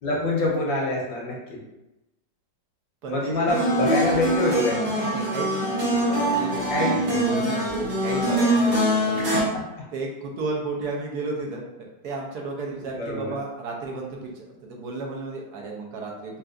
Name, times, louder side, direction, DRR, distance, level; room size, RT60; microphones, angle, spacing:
voice 1, 0.0-1.6 3.1-5.1 6.7-7.2 9.3-9.9 12.7-13.4, left 2 dB, 80° left, -3 dB, 1.7 m, -26 dB
voice 2, 3.0-4.2 4.9-9.3 9.9-11.6 12.0-16.4, right 3 dB, 65° right, -1 dB, 1.2 m, -33 dB
sound 1, 3.5-9.4, right 1 dB, 85° right, 2.2 m, -23 dB
5.6 x 2.5 x 2.5 m, 0.96 s
omnidirectional pair, 2.0 m